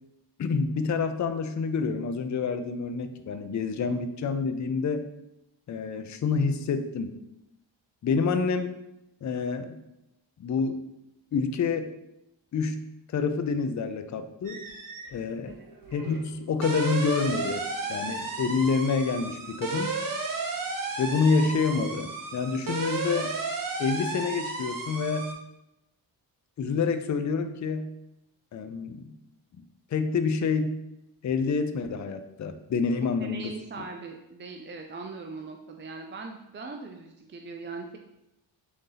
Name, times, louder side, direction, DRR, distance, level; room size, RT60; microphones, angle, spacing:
voice 1, 0.4-5.1 5.7-7.2 8.0-8.7 9.2-9.8 10.4-10.8 11.3-11.9 12.5-14.6 15.1-15.5 15.9-20.0 21.0-23.3 23.8-25.4 26.6-27.9 28.5-29.1 29.6-29.7 29.9-30.8 31.2-33.5, left 5 dB, 35° left, 9 dB, 0.4 m, -28 dB
sound 1, 14.4-15.1 15.5-25.3, right 3 dB, 40° right, 0.8 m, -33 dB
voice 2, 33.2-38.0, right 4 dB, 25° right, 3 dB, 0.4 m, -40 dB
3.8 x 2.6 x 3.9 m, 0.88 s
cardioid pair, 50°, 50 cm